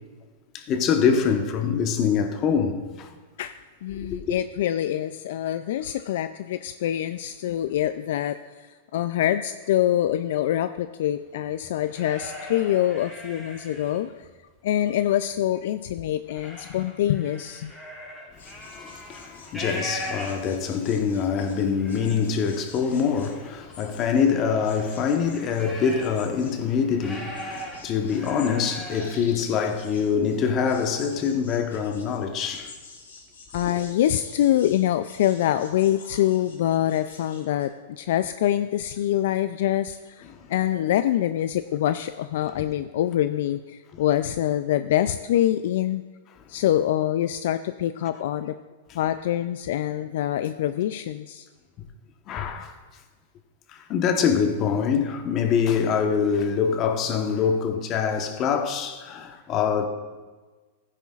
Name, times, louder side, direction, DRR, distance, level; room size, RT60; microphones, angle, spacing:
voice 1, 0.5-3.1 3.9-4.2 18.7-32.7 33.6-33.8 48.9-49.0 52.3-52.7 53.7-59.9, left 6 dB, 35° left, 1.1 m, -24 dB
voice 2, 3.8-14.3 14.6-17.7 33.5-46.0 46.5-48.6 48.9-51.5, left 12 dB, 65° left, 0.3 m, -25 dB
sound 1, 11.4-14.3 14.7-15.5 15.9-20.7 21.3-21.4 21.6-22.2 22.8-26.3 26.6-29.2, equal, 10° left, 3.4 m, -40 dB
sound 2, 18.3-24.3 24.6-37.6, left 4 dB, 85° left, 2.4 m, -48 dB
15.0 x 9.9 x 2.4 m
hypercardioid pair, 125°, 0 cm